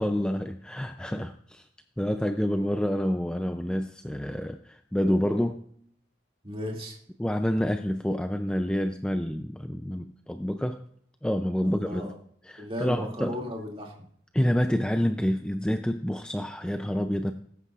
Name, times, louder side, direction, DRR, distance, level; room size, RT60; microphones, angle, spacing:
voice 1, 0.0-1.7 2.0-5.6 7.2-10.8 11.2-12.1 12.4-13.4 14.3-17.3, equal, 5° left, 7 dB, 0.4 m, -28 dB
voice 2, 6.4-7.0 11.6-12.1 12.6-13.9, left 1 dB, 30° right, 0 dB, 2.4 m, -35 dB
19.0 x 9.7 x 2.4 m, 0.64 s
head